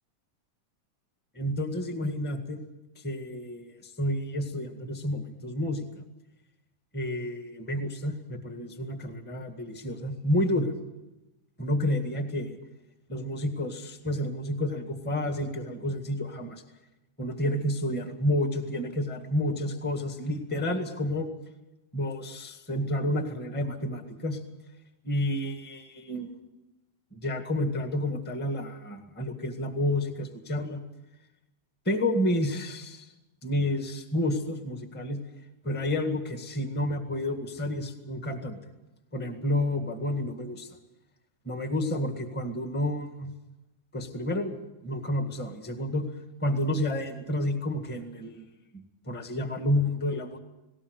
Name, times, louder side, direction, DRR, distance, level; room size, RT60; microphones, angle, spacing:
voice 1, 1.3-2.6 2.9-5.8 6.9-10.7 11.6-12.6 13.1-16.6 17.2-21.3 21.9-24.4 25.0-26.3 27.1-30.8 31.8-33.1 33.4-35.2 35.6-38.6 39.1-40.7 41.4-43.3 43.9-44.5 44.8-46.0 46.4-48.5 48.7-50.4, left 1 dB, 5° left, 6 dB, 0.9 m, -30 dB
19.5 x 18.0 x 8.2 m, 0.97 s
omnidirectional pair, 3.7 m